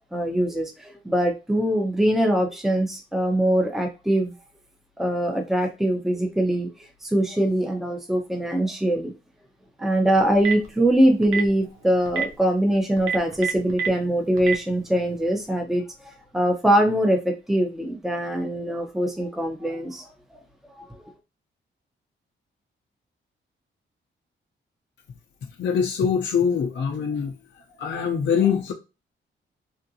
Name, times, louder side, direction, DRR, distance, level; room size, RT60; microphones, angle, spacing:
voice 1, 0.1-4.3 5.0-6.7 7.0-9.1 9.8-20.0, right 1 dB, ahead, 0.7 m, -23 dB
Telephone, 10.2-10.7 11.2-11.5 12.0-12.2 13.0-13.9 14.4-14.5, right 6 dB, 85° right, 0.7 m, -25 dB
voice 2, 25.6-27.3 27.8-28.7, left 7 dB, 65° left, 0.6 m, -23 dB
3.5 x 2.6 x 2.7 m
cardioid pair, 90°, 20 cm